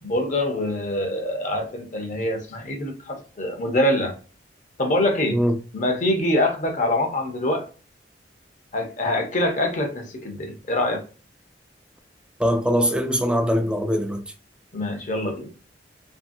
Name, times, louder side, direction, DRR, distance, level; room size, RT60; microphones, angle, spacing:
voice 1, 0.0-4.1 4.8-5.4 5.7-7.7 8.7-11.0 14.7-15.5, left 1 dB, 40° left, 0.7 m, -24 dB
voice 2, 12.4-14.2, equal, 5° right, 0.3 m, -22 dB
2.7 x 2.6 x 2.6 m
head